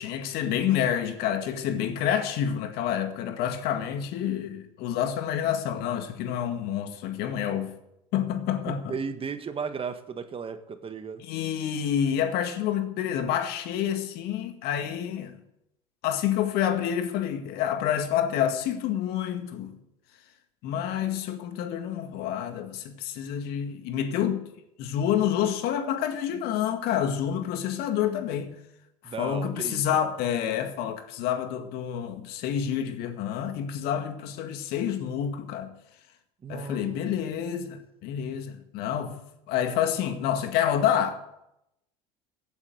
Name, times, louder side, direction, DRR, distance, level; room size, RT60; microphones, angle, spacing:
voice 1, 0.0-7.7 8.1-8.9 11.2-15.4 16.0-19.8 20.6-24.4 24.8-28.6 29.0-35.7 36.5-39.2 39.5-41.2, left 9 dB, 65° left, 2.0 m, -28 dB
voice 2, 8.7-11.2 29.0-29.8 36.4-37.1, right 6 dB, 30° right, 1.7 m, -35 dB
16.0 x 8.5 x 8.1 m
hypercardioid pair, 80°, 18 cm